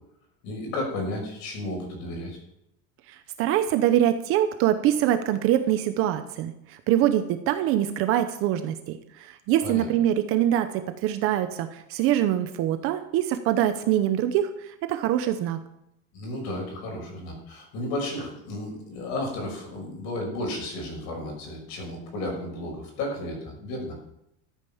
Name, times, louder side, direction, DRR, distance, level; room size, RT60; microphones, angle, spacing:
voice 1, 0.4-2.4 9.6-9.9 16.1-24.0, left 1 dB, 45° left, 1 dB, 6.2 m, -33 dB
voice 2, 3.1-10.7 11.0-15.6, right 11 dB, 35° right, 9 dB, 0.8 m, -24 dB
13.5 x 8.8 x 7.1 m, 0.81 s
supercardioid pair, 170°, 40 cm